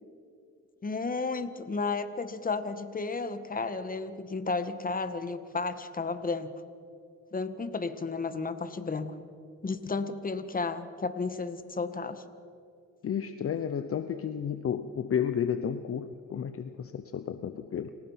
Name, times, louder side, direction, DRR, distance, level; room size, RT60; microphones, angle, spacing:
voice 1, 0.8-6.5 7.3-9.2 9.6-12.2, left 4 dB, 30° left, 10 dB, 1.6 m, -33 dB
voice 2, 13.0-17.9, left 8 dB, 50° left, 11 dB, 0.9 m, -32 dB
28.0 x 18.0 x 5.8 m, 2.4 s
cardioid pair, 90°, 30 cm